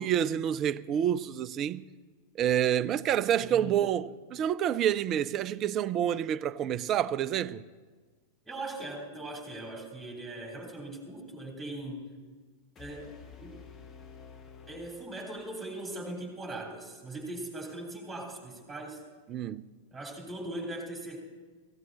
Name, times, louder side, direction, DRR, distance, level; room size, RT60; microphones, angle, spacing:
voice 1, 0.0-1.8 2.4-7.6 19.3-19.6, right 10 dB, 35° right, 0.4 m, -28 dB
voice 2, 3.4-3.8 8.5-12.2 12.8-13.1 13.4-13.6 14.7-19.0 19.9-21.2, right 1 dB, 10° right, 3.5 m, -40 dB
sound 1, 12.8-15.8, left 6 dB, 25° left, 1.4 m, -51 dB
16.5 x 16.0 x 4.1 m
figure-of-eight pair, 90°, 0 cm